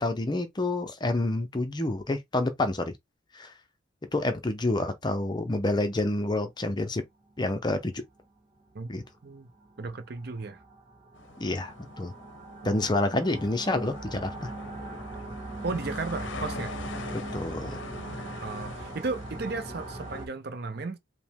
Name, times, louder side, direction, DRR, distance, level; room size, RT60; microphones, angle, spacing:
voice 1, 0.0-2.9 3.3-3.5 4.1-7.0 7.4-7.9 8.9-9.0 11.4-12.1 12.6-14.5 17.1-17.8, left 2 dB, 20° left, 0.5 m, -28 dB
sound 1, 7.3-7.4 8.1-8.4 8.7-8.8 9.3-20.3, right 2 dB, 25° right, 0.8 m, -40 dB
voice 2, 9.8-10.6 12.6-12.7 15.6-16.7 18.4-21.0, right 3 dB, 50° right, 0.5 m, -34 dB
sound 2, 11.1-20.3, left 4 dB, 65° left, 0.6 m, -44 dB
4.9 x 2.1 x 3.5 m
head